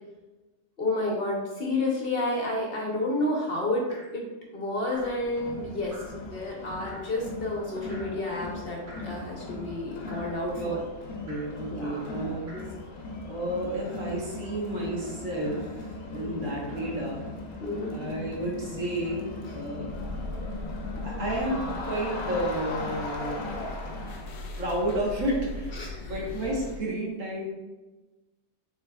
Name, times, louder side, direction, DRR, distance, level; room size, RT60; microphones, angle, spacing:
voice 1, 0.8-3.8 4.1-4.2 4.5-6.0 6.3-10.8 11.7-12.6 16.2-16.5 17.6-18.0 25.7-26.1, left 2 dB, 45° left, -1 dB, 0.8 m, -30 dB
Drip, 3.9-4.2 4.9-5.3 5.9-6.3 6.9-7.2 7.9-8.2 8.9-9.2 10.1-10.4 11.3-11.6 12.5-12.8 13.7-14.1 15.0-15.1, right 1 dB, 80° right, 2.2 m, -49 dB
Crowd, 4.9-24.4, left 2 dB, 65° left, 1.1 m, -38 dB
voice 2, 11.2-12.5 13.2-17.3 17.9-20.0 21.0-23.9 24.6-27.5, right 1 dB, 50° right, -4 dB, 1.5 m, -32 dB
sound 1, 19.9-26.8, left 2 dB, 90° left, 0.5 m, -39 dB
6.9 x 3.3 x 2.3 m, 1.2 s
omnidirectional pair, 1.8 m